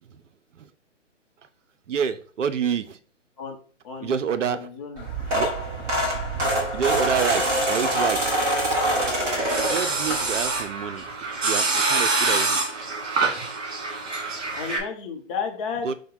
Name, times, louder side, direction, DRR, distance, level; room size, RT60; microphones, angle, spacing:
voice 1, 1.9-3.0 4.0-4.7 5.3-5.5 6.7-8.8 9.6-11.0 11.4-12.6 15.8-15.9, right 7 dB, 75° right, 11 dB, 0.6 m, -28 dB
voice 2, 4.4-5.1 14.5-15.9, left 6 dB, 25° left, 2 dB, 0.8 m, -32 dB
sound 1, 5.0-10.6 11.1-11.3 12.6-12.7 12.9-13.0 13.3-13.5, right 1 dB, 10° right, 0.5 m, -25 dB
sound 2, 8.8-14.8, right 3 dB, 55° right, 1.7 m, -26 dB
4.7 x 2.2 x 4.6 m, 0.42 s
figure-of-eight pair, 135°, 38 cm